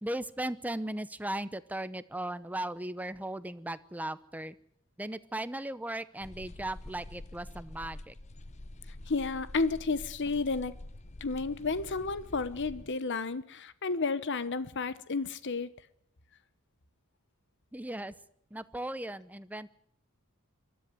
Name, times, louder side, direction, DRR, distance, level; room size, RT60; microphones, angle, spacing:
voice 1, 0.0-4.6 5.0-8.1 17.7-18.1 18.5-19.7, right 1 dB, 5° right, 0.8 m, -37 dB
sound 1, 6.2-12.9, left 1 dB, 35° left, 0.8 m, -47 dB
voice 2, 9.1-10.8 11.2-15.7, left 4 dB, 55° left, 1.1 m, -32 dB
23.0 x 13.5 x 9.6 m
head